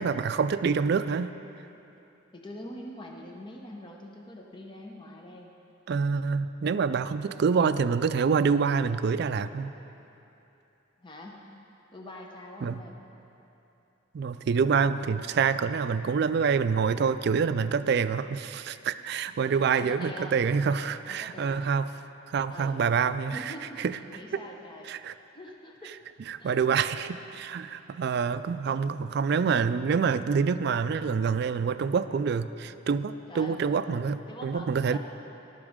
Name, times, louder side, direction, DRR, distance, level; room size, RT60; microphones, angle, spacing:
voice 1, 0.0-1.3 5.9-9.7 12.6-12.8 14.1-21.9 22.3-24.0 24.3-24.4 24.9-25.1 26.3-35.0, right 6 dB, 55° right, 13 dB, 0.3 m, -26 dB
voice 2, 2.3-5.5 11.0-11.4 11.9-12.9 19.4-20.4 21.1-21.7 22.5-22.8 23.3-23.8 24.1-24.9 25.3-26.0 26.4-26.6 33.3-33.6 34.3-35.0, left 1 dB, 25° left, 0 dB, 0.8 m, -44 dB
13.5 x 11.5 x 3.6 m, 2.9 s
head